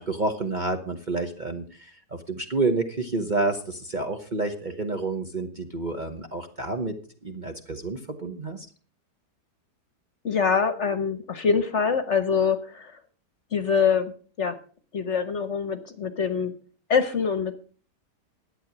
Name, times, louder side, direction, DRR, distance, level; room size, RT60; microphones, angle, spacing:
voice 1, 0.0-7.0 7.2-8.7, right 2 dB, 35° right, 5 dB, 1.0 m, -29 dB
voice 2, 10.2-13.0 13.5-14.6 14.9-16.5 16.9-17.5, left 6 dB, 50° left, 11 dB, 1.2 m, -24 dB
11.5 x 8.7 x 6.1 m, 0.42 s
omnidirectional pair, 1.8 m